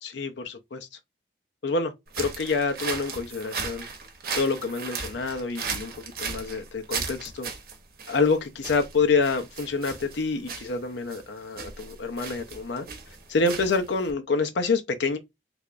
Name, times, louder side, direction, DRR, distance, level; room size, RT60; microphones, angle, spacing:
voice 1, 0.0-0.9 1.6-3.8 4.3-7.5 8.1-12.9 13.3-15.2, left 4 dB, 80° left, 0.6 m, -27 dB
sound 1, 2.1-14.1, right 5 dB, 55° right, 0.8 m, -36 dB
3.4 x 3.3 x 2.5 m
head